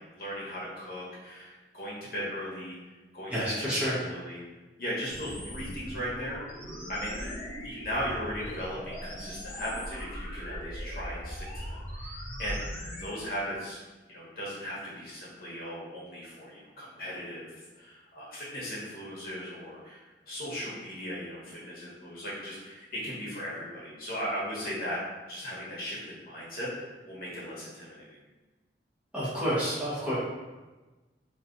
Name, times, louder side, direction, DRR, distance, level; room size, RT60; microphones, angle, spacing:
voice 1, 0.0-4.4 4.8-6.4 6.9-7.4 7.6-13.8 14.1-17.5 17.7-25.0 25.3-28.2, equal, 55° left, -7 dB, 1.0 m, -37 dB
voice 2, 3.3-3.9 29.1-30.2, equal, 5° right, -10 dB, 1.0 m, -29 dB
sound 1, 5.1-13.1, equal, 15° left, 0.8 m, -39 dB
2.9 x 2.8 x 2.5 m, 1.2 s
head